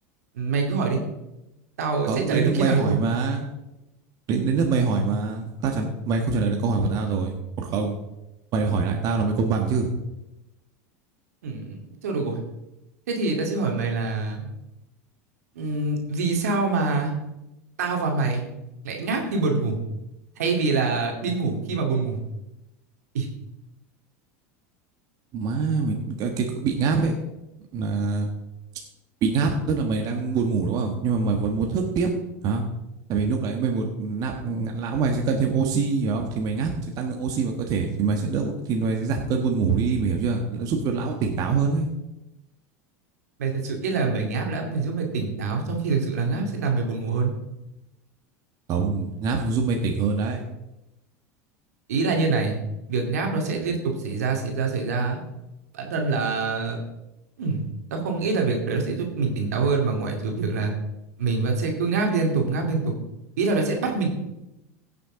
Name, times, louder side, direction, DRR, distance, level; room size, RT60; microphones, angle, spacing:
voice 1, 0.3-1.0 1.8-3.0 11.4-12.4 13.1-14.5 15.6-17.1 17.8-18.4 18.8-19.8 20.4-22.2 23.1-23.3 43.4-47.3 51.9-52.6 52.9-55.2 55.7-56.8 57.4-60.7 61.2-62.9 63.4-64.1, right 4 dB, 80° right, 2 dB, 2.3 m, -25 dB
voice 2, 2.1-3.4 4.3-7.9 8.5-9.9 25.3-27.1 27.7-28.3 29.2-32.1 32.4-32.6 33.1-41.9 48.7-50.4, right 4 dB, 50° right, 2 dB, 1.5 m, -24 dB
16.5 x 6.8 x 3.9 m, 0.93 s
hypercardioid pair, 90°, 8 cm